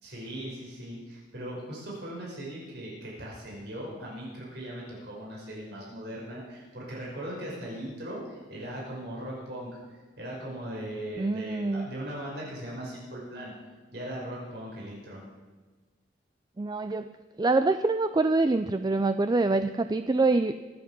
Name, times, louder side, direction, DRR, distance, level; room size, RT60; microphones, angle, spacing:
voice 1, 0.0-13.5 13.9-15.2, right 1 dB, 65° right, -4 dB, 5.6 m, -39 dB
voice 2, 11.2-11.9 16.6-17.1 17.4-20.5, right 3 dB, 20° right, 10 dB, 0.4 m, -25 dB
23.5 x 8.3 x 6.1 m, 1.3 s
head